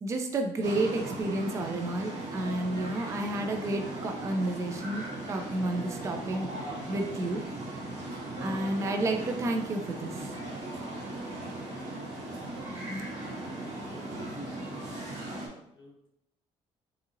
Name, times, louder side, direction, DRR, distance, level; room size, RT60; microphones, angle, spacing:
voice 1, 0.0-6.5 6.9-7.4 8.4-10.3 12.9-13.0, right 2 dB, 25° right, 4 dB, 0.3 m, -31 dB
sound 1, 0.6-15.5, right 1 dB, 75° right, 1.0 m, -38 dB
voice 2, 10.7-11.3 13.9-15.1 15.5-16.1, left 2 dB, 40° left, -1 dB, 0.8 m, -56 dB
2.7 x 2.7 x 2.5 m, 0.78 s
cardioid pair, 120°, 12 cm